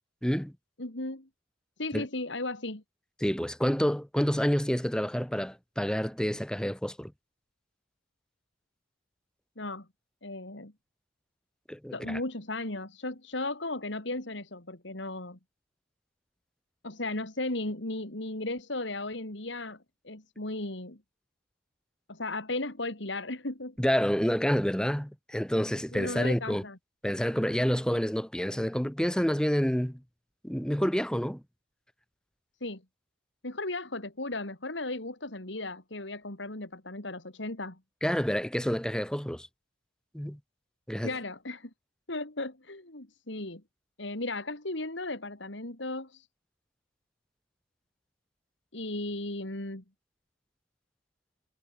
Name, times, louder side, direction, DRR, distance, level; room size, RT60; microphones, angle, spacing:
voice 1, 0.2-0.5 1.9-2.1 3.2-7.1 11.7-12.2 23.8-26.6 27.0-30.0 30.4-31.4 38.0-39.5 40.1-40.4 40.9-41.1, equal, 5° left, 1.2 m, -28 dB
voice 2, 0.8-1.3 1.8-2.8 9.6-9.9 10.2-10.7 11.9-15.4 16.8-21.0 22.1-23.7 25.9-26.8 32.6-32.8 33.4-37.8 41.0-41.7 42.1-43.6 44.0-46.3 48.7-49.8, left 2 dB, 70° left, 3.0 m, -36 dB
head